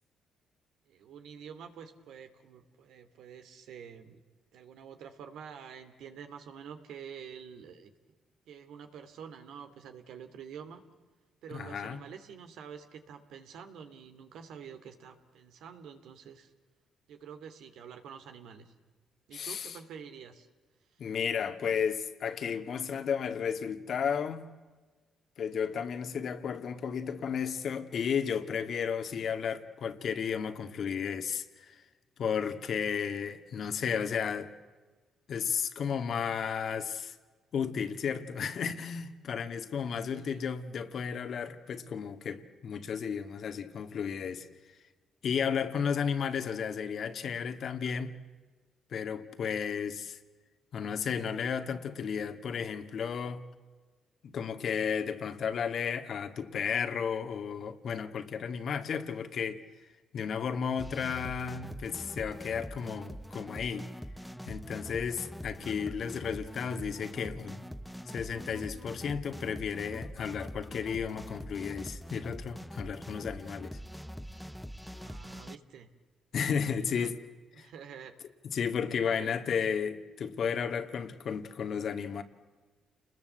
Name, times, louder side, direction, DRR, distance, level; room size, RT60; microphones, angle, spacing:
voice 1, 0.9-4.2 4.5-7.9 8.5-10.8 11.4-16.5 17.1-18.7 19.3-20.5 20.9-21.0 40.1-40.4 74.9-75.9 76.8-77.1 77.5-78.1 79.0-79.3, right 7 dB, 80° right, 2.7 m, -48 dB
voice 2, 11.5-12.0 19.3-19.8 21.0-24.5 25.4-31.8 32.2-34.5 35.3-37.2 37.5-44.5 45.2-48.1 48.9-50.2 50.7-53.4 54.2-59.6 60.1-63.9 64.5-67.6 68.1-73.8 76.3-77.2 77.6-77.7 78.4-82.2, left 7 dB, 60° left, 2.1 m, -33 dB
sound 1, 60.8-75.6, equal, ahead, 0.9 m, -43 dB
29.5 x 21.0 x 8.1 m
cardioid pair, 90°, 0 cm